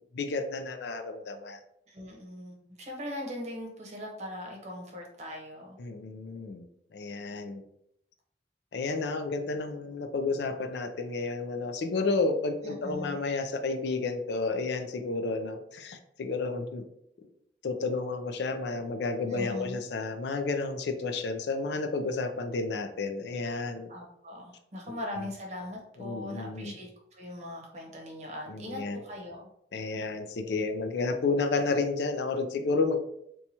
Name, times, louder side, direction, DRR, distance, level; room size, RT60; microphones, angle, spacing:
voice 1, 0.0-1.6 5.8-6.7 6.9-7.6 8.7-16.8 17.6-23.9 24.9-25.3 26.0-26.7 28.5-29.0 29.7-33.0, left 3 dB, 65° left, 7 dB, 0.4 m, -31 dB
voice 2, 1.9-5.8 12.6-13.2 19.3-19.8 23.9-29.5 29.8-29.9, left 1 dB, 40° right, 0 dB, 0.8 m, -40 dB
2.9 x 2.3 x 4.0 m, 0.74 s
head